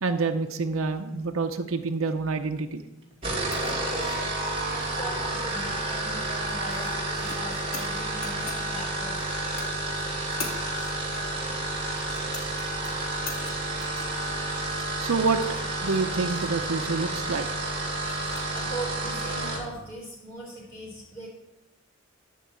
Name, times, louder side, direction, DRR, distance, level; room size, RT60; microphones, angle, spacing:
voice 1, 0.0-2.8 15.0-15.4 15.8-17.5, right 4 dB, 75° right, 4 dB, 0.7 m, -27 dB
sound 1, 3.1-19.7, right 2 dB, 30° right, 2.5 m, -30 dB
sound 2, 3.2-19.7, left 3 dB, 75° left, 2.2 m, -45 dB
voice 2, 3.6-9.2 18.5-21.3, right 1 dB, 15° left, -8 dB, 3.5 m, -40 dB
12.5 x 4.6 x 8.2 m, 0.97 s
head